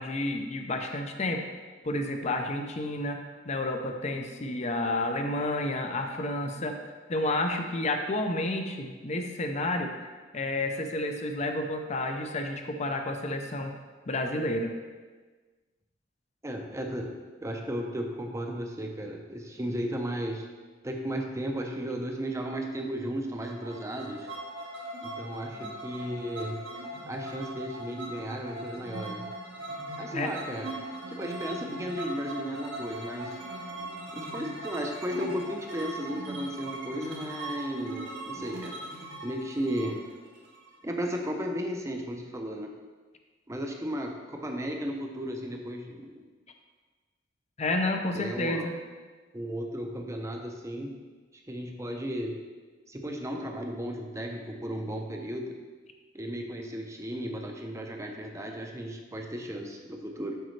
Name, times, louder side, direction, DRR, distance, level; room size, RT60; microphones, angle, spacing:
voice 1, 0.0-1.4 1.8-3.2 3.4-6.8 7.1-9.9 10.3-13.7 14.1-14.7 30.1-30.3 47.6-48.7, left 2 dB, 35° left, 5 dB, 0.6 m, -30 dB
voice 2, 16.4-17.2 17.4-20.5 20.8-24.3 25.0-26.6 27.1-29.2 30.0-30.7 31.1-33.4 34.1-38.8 39.2-40.0 40.8-42.7 43.5-46.1 48.1-48.7 49.3-50.9 51.5-52.4 52.9-55.6 56.1-60.4, equal, 15° right, 2 dB, 0.6 m, -34 dB
sound 1, 23.4-41.1, right 1 dB, 80° right, 1.6 m, -40 dB
7.9 x 5.3 x 3.2 m, 1.4 s
head